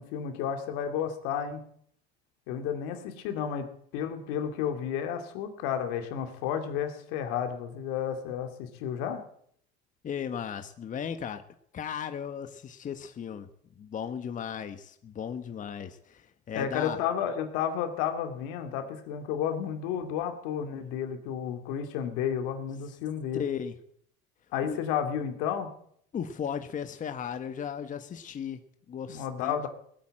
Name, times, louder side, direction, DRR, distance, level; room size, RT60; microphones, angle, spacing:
voice 1, 0.0-1.6 2.5-9.2 16.5-23.4 24.5-25.7 29.1-29.7, left 8 dB, 85° left, 6 dB, 2.5 m, -32 dB
voice 2, 10.0-11.4 11.7-13.5 13.8-17.0 23.3-23.8 24.7-24.8 26.1-29.7, left 8 dB, 40° left, 9 dB, 1.2 m, -36 dB
19.0 x 8.5 x 8.9 m, 0.66 s
supercardioid pair, 105°, 21 cm